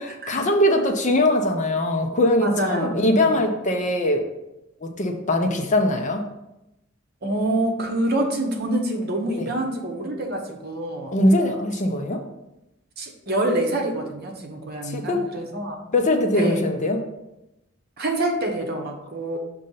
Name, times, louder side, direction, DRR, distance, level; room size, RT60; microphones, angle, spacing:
voice 1, 0.3-4.2 4.8-6.2 9.4-9.5 11.1-12.2 14.8-15.3 15.9-17.0, left 1 dB, 35° left, 4 dB, 0.6 m, -21 dB
voice 2, 2.4-2.9 3.2-3.3 7.2-11.1 13.0-15.8 16.3-16.7 18.0-19.4, right 1 dB, 50° right, 2 dB, 1.0 m, -26 dB
6.3 x 2.7 x 5.5 m, 0.91 s
head